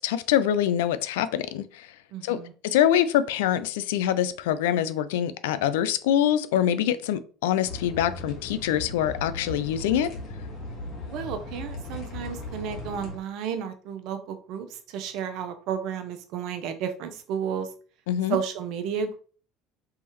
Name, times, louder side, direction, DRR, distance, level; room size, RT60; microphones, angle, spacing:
voice 1, 0.0-1.9 2.2-10.1 18.1-18.4, left 10 dB, 85° left, 13 dB, 0.3 m, -25 dB
voice 2, 2.1-2.5 11.1-17.7 18.3-19.2, right 7 dB, 65° right, 8 dB, 0.6 m, -32 dB
sound 1, 7.6-13.2, left 2 dB, 55° left, 1.5 m, -37 dB
3.4 x 3.2 x 2.9 m, 0.41 s
hypercardioid pair, 80°, 0 cm